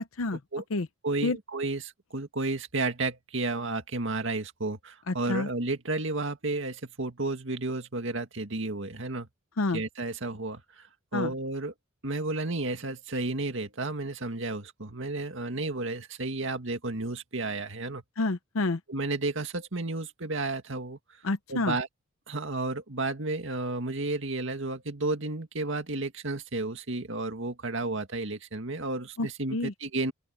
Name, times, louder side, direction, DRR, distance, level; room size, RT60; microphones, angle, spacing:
voice 1, 0.0-0.4 0.7-0.9 1.2-1.4 5.1-5.5 9.6-9.8 11.1-11.3 18.2-18.8 21.2-21.8 29.2-29.7, left 2 dB, 85° left, 0.8 m, -29 dB
voice 2, 1.0-9.3 9.7-10.9 11.1-11.7 12.0-18.0 18.9-21.0 21.5-21.9 22.3-30.1, right 2 dB, 65° right, 2.1 m, -32 dB
open air
head